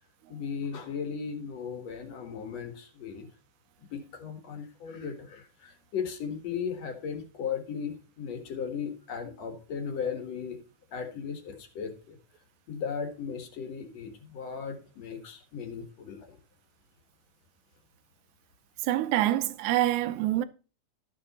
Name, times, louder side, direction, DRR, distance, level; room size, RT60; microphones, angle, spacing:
voice 1, 0.3-3.3 3.9-10.6 10.9-12.2 12.7-16.4, left 6 dB, 60° left, 2.7 m, -36 dB
voice 2, 18.8-20.4, right 14 dB, 75° right, 2.1 m, -26 dB
13.0 x 7.0 x 4.2 m
omnidirectional pair, 3.7 m